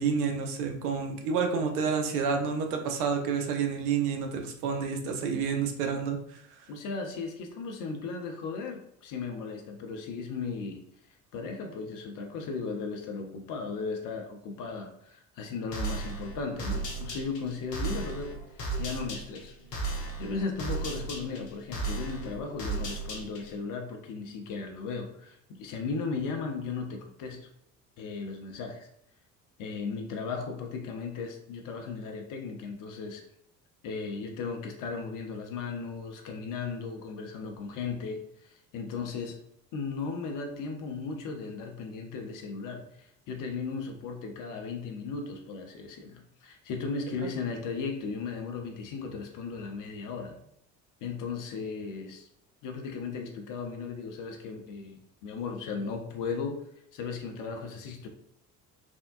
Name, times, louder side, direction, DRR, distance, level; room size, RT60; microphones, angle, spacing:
voice 1, 0.0-6.4, right 6 dB, 65° right, 4 dB, 0.6 m, -29 dB
voice 2, 6.7-10.8 11.3-19.5 20.2-27.5 28.0-28.9 29.6-33.2 33.8-39.4 39.7-50.4 51.0-52.3 52.6-58.1, left 4 dB, 40° left, 3 dB, 0.6 m, -36 dB
sound 1, 15.7-23.6, right 3 dB, 85° left, 0.7 m, -35 dB
3.5 x 2.1 x 2.4 m, 0.70 s
figure-of-eight pair, 55°, 48 cm